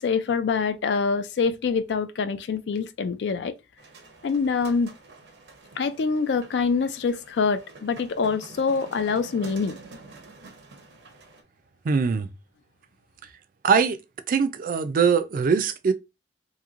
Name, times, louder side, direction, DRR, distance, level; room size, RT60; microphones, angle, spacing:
voice 1, 0.0-3.5 4.2-4.9 5.8-9.8, left 5 dB, 75° left, 0.4 m, -25 dB
sound 1, 3.8-11.4, right 3 dB, 90° right, 0.7 m, -47 dB
voice 2, 11.8-12.3 13.6-14.0 14.3-15.9, right 5 dB, 50° right, 0.4 m, -22 dB
3.0 x 2.6 x 2.4 m
head